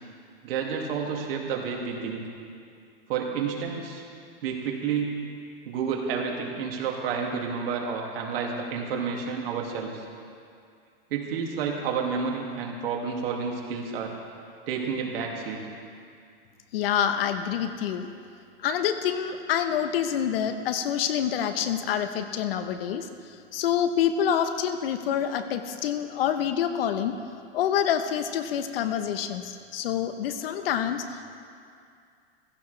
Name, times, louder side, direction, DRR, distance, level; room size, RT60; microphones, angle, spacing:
voice 1, 0.4-2.2 3.1-4.0 4.4-5.2 5.7-10.0 11.1-14.2 14.7-15.7, right 6 dB, 75° right, 0 dB, 2.4 m, -30 dB
voice 2, 16.7-18.1 18.6-23.1 23.5-27.1 27.5-31.0, left 9 dB, 75° left, 8 dB, 1.1 m, -27 dB
16.0 x 15.5 x 3.4 m, 2.3 s
supercardioid pair, 135°, 30 cm